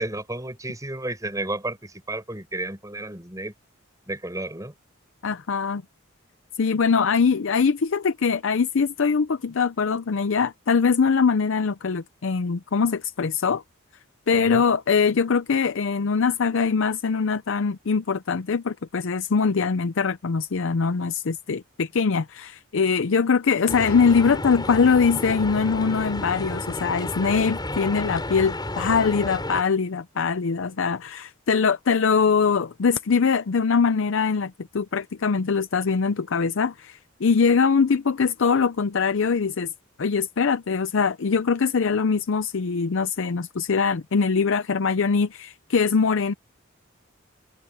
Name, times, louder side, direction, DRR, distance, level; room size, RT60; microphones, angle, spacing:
voice 1, 0.0-3.5 4.1-4.7 14.3-14.6, right 2 dB, 15° right, 6.1 m, -32 dB
voice 2, 5.2-5.8 6.6-13.6 14.3-39.7 40.0-46.3, left 5 dB, 65° left, 0.5 m, -22 dB
sound 1, 23.7-29.6, left 1 dB, 20° left, 7.3 m, -31 dB
head